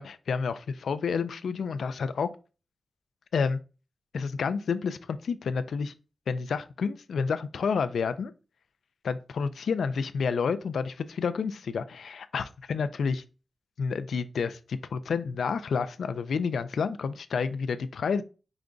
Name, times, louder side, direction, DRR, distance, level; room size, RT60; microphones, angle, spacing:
voice 1, 0.0-2.3 3.3-3.6 4.1-5.9 6.3-8.3 9.0-13.2 13.8-18.2, left 5 dB, 90° left, 0.3 m, -29 dB
5.0 x 2.3 x 3.7 m
wide cardioid pair, 130°, 0 cm